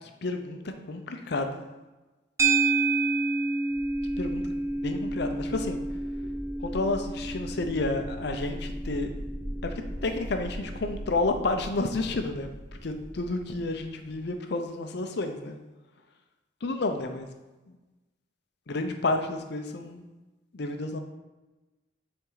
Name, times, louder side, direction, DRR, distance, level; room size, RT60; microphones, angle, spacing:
voice 1, 0.2-0.6 0.9-1.6 4.2-4.4 4.8-5.8 6.6-9.1 10.0-12.5 12.8-15.6 16.6-17.3 18.7-20.0 20.5-21.0, left 2 dB, 55° left, 6 dB, 0.6 m, -30 dB
sound 1, 2.4-10.8, right 3 dB, 15° right, 0.5 m, -30 dB
sound 2, 3.7-14.3, equal, 50° right, 1.1 m, -40 dB
7.0 x 4.4 x 3.9 m, 1.1 s
head